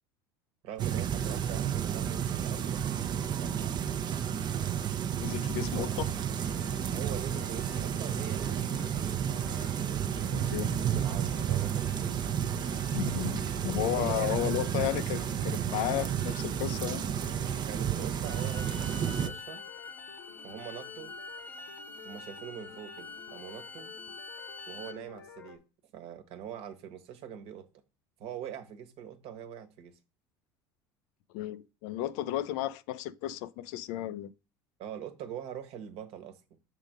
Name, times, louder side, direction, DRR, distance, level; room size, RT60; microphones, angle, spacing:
voice 1, 0.6-3.6 5.7-5.9 6.9-9.1 10.7-12.2 13.8-14.8 17.7-19.6 20.4-21.1 22.0-23.9 24.7-25.6 25.9-27.7 28.2-30.0 34.8-36.6, right 9 dB, 55° right, 1.3 m, -43 dB
sound 1, 0.8-19.3, right 9 dB, 40° right, 0.7 m, -31 dB
voice 2, 5.2-6.1 10.3-10.8 12.9-17.0 31.3-34.3, left 14 dB, 65° left, 0.4 m, -33 dB
sound 2, 6.4-25.6, left 7 dB, 85° left, 1.4 m, -51 dB
Bowed string instrument, 18.2-25.0, left 3 dB, 15° left, 0.6 m, -46 dB
6.2 x 3.7 x 5.1 m
hypercardioid pair, 80°, 12 cm